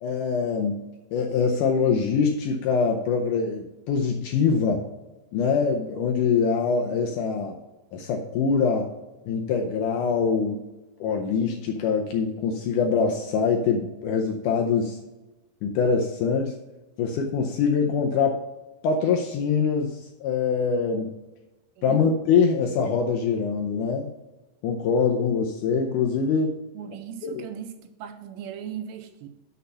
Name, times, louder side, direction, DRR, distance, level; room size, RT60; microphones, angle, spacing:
voice 1, 0.0-4.8 5.3-7.6 7.9-8.9 9.3-10.6 11.0-15.0 15.6-16.5 17.0-18.4 18.8-21.1 21.8-24.1 24.6-26.6 27.2-27.4, left 5 dB, 80° left, 2 dB, 1.9 m, -24 dB
voice 2, 21.8-22.1 26.7-29.3, right 9 dB, 80° right, 8 dB, 2.2 m, -38 dB
6.8 x 6.4 x 5.5 m, 1.1 s
omnidirectional pair, 4.3 m